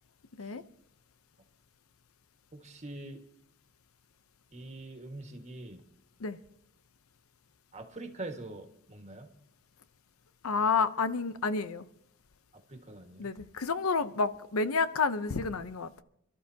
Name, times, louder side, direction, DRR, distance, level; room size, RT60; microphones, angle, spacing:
voice 1, 2.5-3.2 4.5-5.8 7.7-9.3 12.7-13.3, right 2 dB, 35° right, 1.7 m, -44 dB
voice 2, 10.4-11.8 13.2-16.0, left 4 dB, 85° left, 0.8 m, -30 dB
27.5 x 13.0 x 2.8 m
head